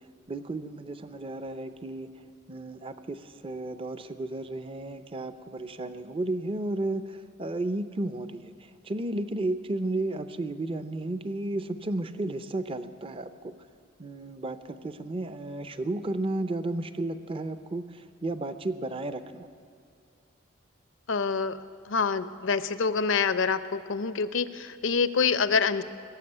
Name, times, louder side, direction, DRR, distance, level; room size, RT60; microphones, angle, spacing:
voice 1, 0.3-2.2 2.5-13.6 14.0-19.5, right 2 dB, 25° right, 11 dB, 0.5 m, -33 dB
voice 2, 21.1-21.6 21.9-25.8, left 5 dB, 65° left, 13 dB, 0.6 m, -26 dB
20.0 x 7.4 x 9.7 m, 2.3 s
head